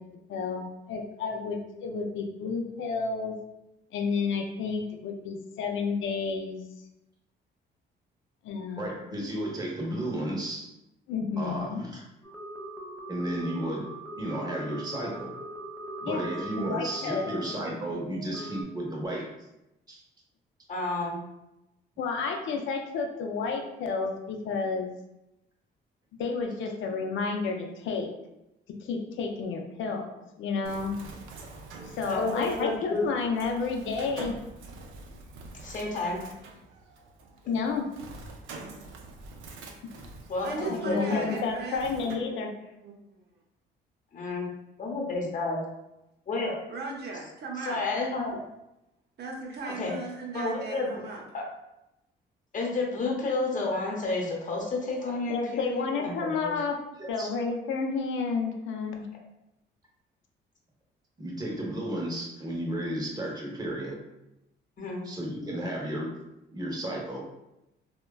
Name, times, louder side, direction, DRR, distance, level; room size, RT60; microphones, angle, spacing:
voice 1, 0.3-3.3 3.9-6.6 8.4-9.2 11.1-11.8 16.0-16.3 16.6-17.3 22.0-24.9 26.2-28.1 28.8-30.1 30.4-31.0 32.0-34.4 37.5-37.9 40.4-42.5 55.3-56.8 57.1-59.0, left 4 dB, 75° left, 2 dB, 0.5 m, -31 dB
voice 2, 8.8-10.7 11.4-12.0 13.1-15.4 16.0-19.3 19.9-20.0 31.7-31.8 57.0-57.3 61.2-64.0 65.0-66.1 66.5-67.2, right 1 dB, 20° right, -2 dB, 0.8 m, -33 dB
sound 1, 12.2-18.6, right 2 dB, 5° left, 0.5 m, -40 dB
voice 3, 20.7-21.2 32.1-33.0 35.6-36.2 40.3-41.4 44.1-44.5 44.8-45.6 46.3-46.5 47.6-48.4 49.8-49.9 50.3-51.0 51.3-51.4 52.5-56.5 64.8-65.0, left 3 dB, 40° left, -1 dB, 0.8 m, -30 dB
Bird, 30.6-42.1, right 3 dB, 90° right, 0.4 m, -46 dB
voice 4, 40.4-42.5 42.8-43.2 46.7-47.8 49.2-51.2, right 3 dB, 55° right, 0 dB, 0.7 m, -37 dB
3.2 x 2.2 x 2.3 m, 0.90 s
cardioid pair, 90°, 20 cm